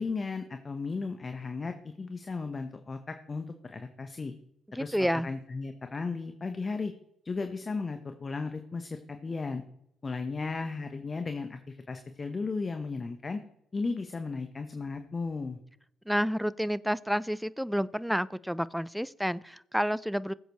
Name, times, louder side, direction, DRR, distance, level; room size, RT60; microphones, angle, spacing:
voice 1, 0.0-4.3 4.7-4.9 5.2-6.9 7.2-9.6 10.0-13.4 13.7-15.6, left 4 dB, 35° left, 7 dB, 1.1 m, -35 dB
voice 2, 4.8-5.3 16.1-20.3, equal, ahead, 19 dB, 0.5 m, -29 dB
19.5 x 7.9 x 3.1 m, 0.75 s
hypercardioid pair, 45°, 0 cm